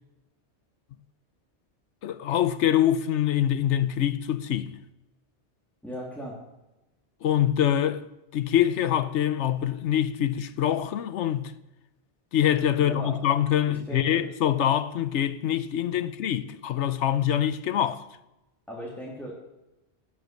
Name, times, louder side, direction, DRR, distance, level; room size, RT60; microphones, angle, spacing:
voice 1, 2.0-4.7 7.2-8.0 8.3-11.5 12.3-18.0, left 10 dB, 85° left, 1.0 m, -24 dB
voice 2, 5.8-6.4 12.8-13.1 13.7-14.2 18.7-19.4, equal, ahead, 2.6 m, -37 dB
16.5 x 6.1 x 6.5 m
omnidirectional pair, 1.2 m